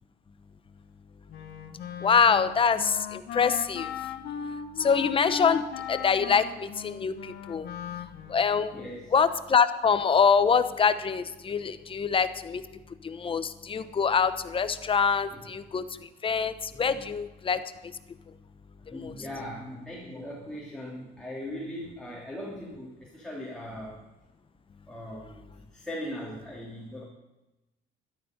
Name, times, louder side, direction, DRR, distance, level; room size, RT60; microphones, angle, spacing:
Wind instrument woodwind instrument, 1.3-8.6, left 8 dB, 70° left, 1.3 m, -37 dB
voice 1, 2.0-3.9 4.8-5.6 5.9-7.1 7.5-7.7 8.3-12.6 13.0-15.8 16.2-17.6 18.9-19.1, left 6 dB, 30° left, 12 dB, 0.9 m, -25 dB
voice 2, 8.7-9.1 11.5-11.6 15.3-15.4 16.7-17.0 18.9-24.0 24.9-27.0, equal, 5° left, -5 dB, 3.1 m, -39 dB
14.0 x 11.5 x 5.3 m, 1.0 s
cardioid pair, 110°, 17 cm